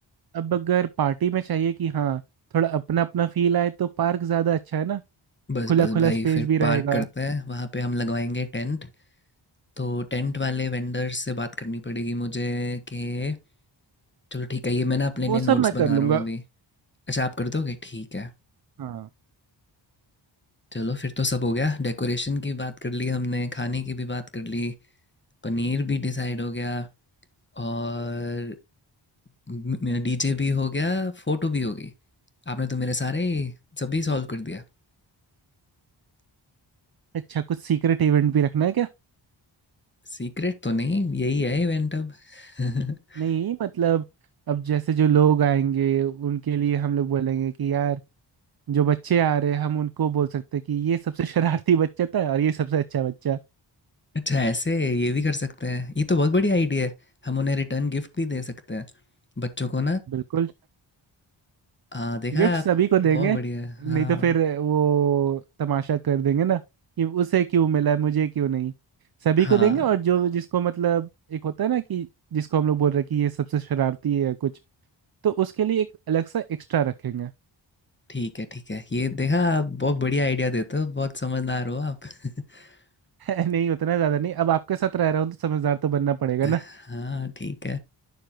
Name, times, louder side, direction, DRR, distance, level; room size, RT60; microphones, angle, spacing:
voice 1, 0.3-2.2 2.5-5.0 5.7-7.1 15.3-16.2 18.8-19.1 37.3-38.9 43.2-44.0 44.5-48.0 48.7-53.4 60.1-60.5 62.3-63.4 63.8-66.6 67.0-68.7 69.2-74.5 75.2-77.3 83.2-86.6, right 9 dB, 50° right, 0.6 m, -23 dB
voice 2, 5.5-8.9 9.8-13.4 14.3-16.4 17.1-18.3 20.7-24.7 25.4-26.9 27.6-28.6 29.5-31.9 32.5-34.6 40.1-43.3 54.1-56.9 57.2-58.8 59.4-60.0 61.9-62.6 63.1-64.4 69.4-69.8 78.1-82.8 86.4-87.8, left 2 dB, 25° left, 1.3 m, -27 dB
9.5 x 6.6 x 2.9 m
cardioid pair, 65°, 48 cm